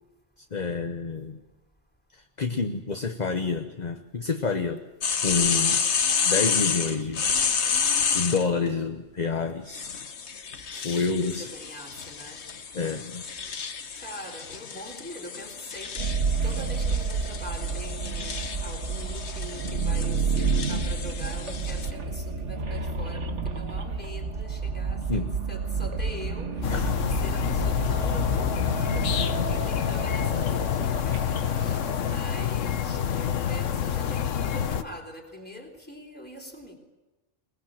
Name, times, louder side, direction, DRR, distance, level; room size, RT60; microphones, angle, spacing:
voice 1, 0.5-1.4 2.1-4.8 5.2-5.9 6.2-10.0 10.8-11.5 12.7-13.2 25.1-25.3 26.7-26.9, left 4 dB, 40° left, 6 dB, 1.0 m, -29 dB
sound 1, 5.0-8.4 9.7-21.9, left 6 dB, 65° left, 1.4 m, -30 dB
voice 2, 11.1-12.4 14.0-36.8, equal, 10° left, 2 dB, 3.5 m, -43 dB
sound 2, 16.0-32.2, right 4 dB, 70° right, 1.8 m, -30 dB
sound 3, 26.6-34.8, left 9 dB, 85° left, 1.2 m, -27 dB
22.0 x 20.0 x 7.5 m, 1.1 s
omnidirectional pair, 1.3 m